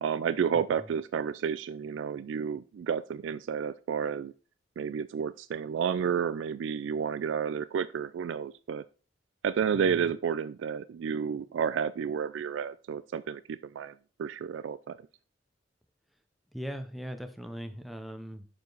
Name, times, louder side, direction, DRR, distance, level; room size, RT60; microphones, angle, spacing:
voice 1, 0.0-4.3 4.8-8.8 9.4-15.0, right 7 dB, 85° right, 14 dB, 0.3 m, -31 dB
voice 2, 9.7-10.1 16.5-18.5, equal, ahead, 7 dB, 0.6 m, -40 dB
7.0 x 4.9 x 3.9 m, 0.36 s
head